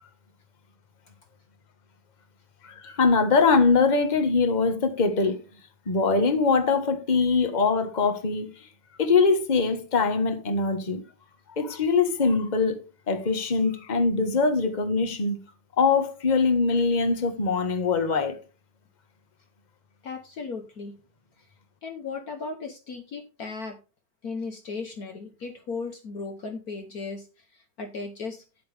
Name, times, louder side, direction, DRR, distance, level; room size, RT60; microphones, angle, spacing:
voice 1, 2.6-5.4 5.9-8.7 9.0-11.0 11.5-12.8 13.1-15.4 15.8-18.4, left 4 dB, 25° left, 1.3 m, -22 dB
voice 2, 20.0-21.0 21.8-23.8 24.2-28.4, left 4 dB, 55° left, 1.3 m, -36 dB
9.4 x 8.8 x 3.4 m
omnidirectional pair, 2.1 m